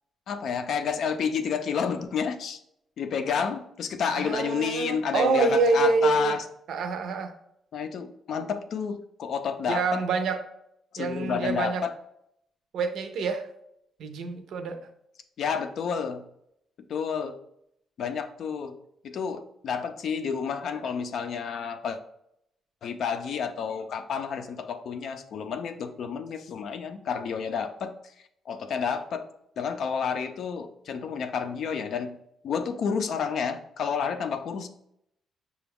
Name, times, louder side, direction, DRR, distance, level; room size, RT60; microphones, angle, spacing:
voice 1, 0.3-2.6 3.0-6.4 7.7-10.0 10.9-11.9 15.4-16.2 16.9-17.4 18.0-18.7 19.0-22.0 22.8-28.0 28.5-29.3 29.6-32.2 32.4-34.7, left 6 dB, 55° left, 9 dB, 0.4 m, -30 dB
voice 2, 4.1-6.4 6.7-7.3 9.7-10.4 11.0-11.9 12.7-13.5 14.0-14.9, right 4 dB, 65° right, 7 dB, 0.5 m, -26 dB
5.8 x 2.3 x 3.5 m, 0.75 s
cardioid pair, 155°, 0 cm